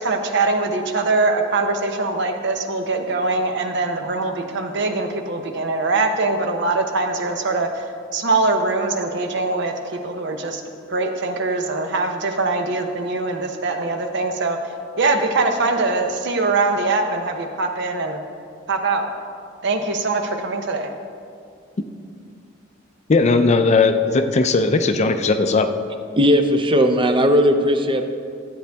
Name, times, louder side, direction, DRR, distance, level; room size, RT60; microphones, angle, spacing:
voice 1, 0.0-7.9 8.1-10.6 10.9-14.6 15.0-18.2 18.7-19.1 19.6-20.9, right 3 dB, 60° right, 5 dB, 0.8 m, -22 dB
voice 2, 23.1-25.7, left 3 dB, 35° left, 8 dB, 0.4 m, -17 dB
voice 3, 26.1-28.0, equal, 25° right, 7 dB, 0.6 m, -17 dB
13.0 x 8.0 x 3.4 m, 2.3 s
head